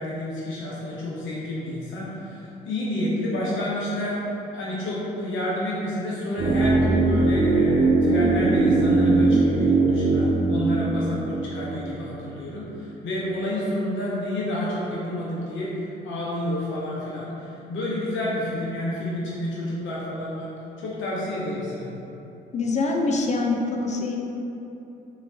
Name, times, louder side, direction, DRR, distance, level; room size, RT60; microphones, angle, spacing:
voice 1, 0.0-20.5 20.8-21.9, left 1 dB, 65° left, -6 dB, 1.0 m, -29 dB
sound 1, 6.4-12.4 12.7-12.8, right 3 dB, 35° right, 0.4 m, -21 dB
voice 2, 22.5-24.2, left 3 dB, 35° left, 1 dB, 0.5 m, -24 dB
3.1 x 3.0 x 2.8 m, 2.9 s
supercardioid pair, 60°, 21 cm